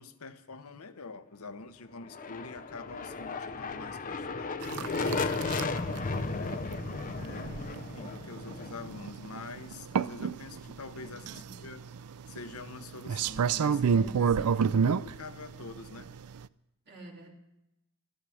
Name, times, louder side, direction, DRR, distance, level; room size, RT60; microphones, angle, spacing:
voice 1, 0.0-6.5 7.1-7.6 7.9-11.8 12.3-13.8 14.2-14.3 14.7-16.1, left 4 dB, 75° left, 10 dB, 0.9 m, -46 dB
sound 1, 2.0-9.8, left 4 dB, 35° left, 0.6 m, -35 dB
sound 2, 4.6-16.5, right 6 dB, 90° right, 0.4 m, -31 dB
voice 2, 7.0-7.7 11.0-11.6 13.6-14.9 16.9-17.3, right 2 dB, 50° right, -1 dB, 2.8 m, -48 dB
13.0 x 12.0 x 6.2 m, 0.90 s
head